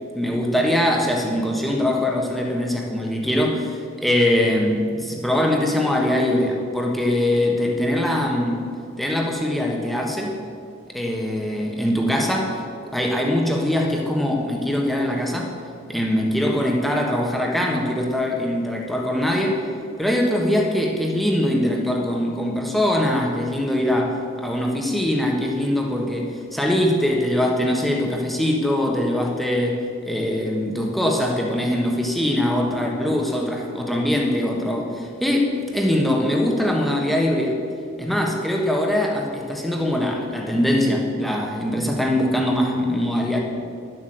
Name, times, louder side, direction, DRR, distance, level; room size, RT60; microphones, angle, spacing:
voice 1, 0.1-8.7 9.0-10.4 10.9-15.5 15.9-19.6 20.0-29.8 30.1-37.6 38.0-43.4, left 1 dB, ahead, 0 dB, 1.3 m, -22 dB
11.5 x 7.9 x 7.8 m, 2.4 s
head